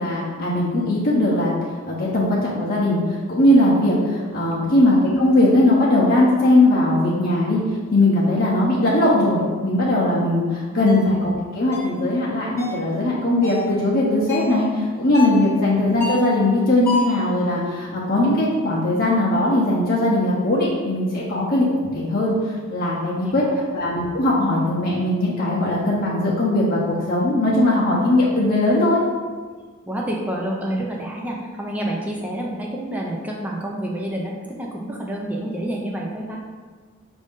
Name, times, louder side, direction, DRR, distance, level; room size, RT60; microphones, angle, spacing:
voice 1, 0.0-1.5 1.8-7.6 7.9-23.4 23.7-29.0, left 1 dB, 40° left, -6 dB, 0.7 m, -19 dB
sound 1, 10.9-11.0 11.7-12.0 12.6-12.8 13.4-13.7 14.3-14.6 15.1-15.4 16.0-16.3 16.8-17.2, left 3 dB, 10° left, 0.9 m, -28 dB
voice 2, 23.2-23.6 29.9-36.4, right 1 dB, 5° right, -2 dB, 0.4 m, -29 dB
5.2 x 2.6 x 3.6 m, 1.5 s
head